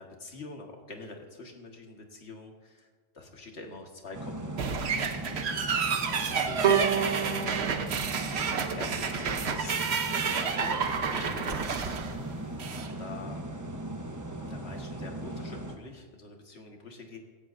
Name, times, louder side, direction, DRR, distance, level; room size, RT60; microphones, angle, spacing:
voice 1, 0.0-2.9 3.1-4.7 6.1-8.0 8.3-11.8 12.8-13.4 14.5-17.2, left 3 dB, 55° left, 2 dB, 1.8 m, -45 dB
sound 1, 4.1-15.8, right 1 dB, 15° right, 0.9 m, -38 dB
sound 2, 4.6-12.9, right 6 dB, 60° right, 1.1 m, -30 dB
Bowed string instrument, 6.6-9.7, right 8 dB, 80° right, 1.4 m, -30 dB
16.5 x 15.5 x 2.6 m, 1.5 s
omnidirectional pair, 1.3 m